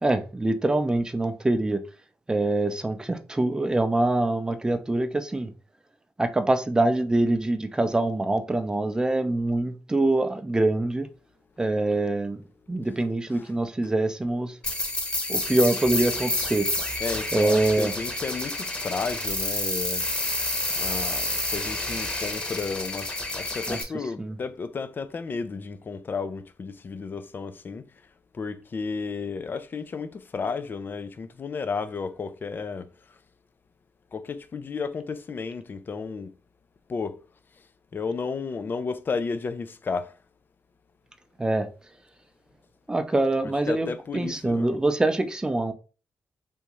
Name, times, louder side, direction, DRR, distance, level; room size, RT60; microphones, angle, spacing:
voice 1, 0.0-1.8 2.3-5.5 6.2-11.1 11.6-12.4 12.7-14.5 15.3-16.7 17.3-17.9 23.7-23.8 24.2-24.3 41.4-41.7 42.9-45.7, right 2 dB, 15° right, 0.6 m, -24 dB
sound 1, 14.6-23.8, left 1 dB, 20° left, 1.0 m, -29 dB
voice 2, 17.0-20.1 20.8-27.9 28.3-32.9 34.1-36.3 36.9-37.2 37.9-40.1 43.7-44.8, left 4 dB, 45° left, 0.4 m, -33 dB
3.5 x 2.7 x 3.0 m
cardioid pair, 70°, 5 cm